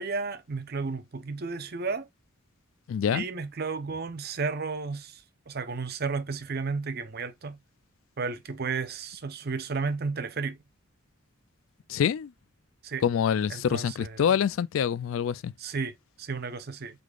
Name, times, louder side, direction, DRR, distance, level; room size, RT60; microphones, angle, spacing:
voice 1, 0.0-2.1 3.1-7.6 8.2-10.6 12.8-13.0 13.5-14.2 15.6-17.0, right 4 dB, 45° right, 0.6 m, -33 dB
voice 2, 2.9-3.2 11.9-12.3 13.0-15.5, left 8 dB, 70° left, 0.3 m, -26 dB
4.9 x 3.8 x 2.3 m
head